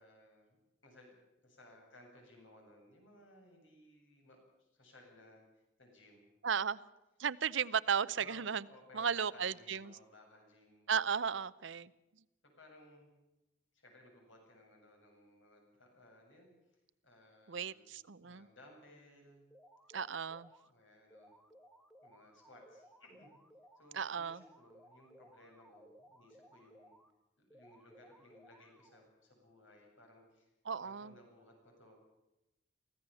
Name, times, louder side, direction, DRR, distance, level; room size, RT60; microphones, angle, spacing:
voice 1, 0.0-6.3 8.2-10.9 12.4-13.1 13.7-19.5 20.6-21.3 22.0-23.3 23.7-26.9 27.4-32.0, left 1 dB, 75° left, 1 dB, 7.9 m, -61 dB
voice 2, 6.4-6.8 7.2-8.6 8.9-9.9 10.9-11.9 17.5-18.5 19.9-20.5 23.9-24.4 30.6-31.1, right 7 dB, 75° right, 17 dB, 0.7 m, -35 dB
sound 1, 19.5-20.7 21.1-23.9 24.3-27.1 27.5-29.1, equal, ahead, 1.2 m, -62 dB
24.0 x 16.0 x 7.0 m, 0.95 s
head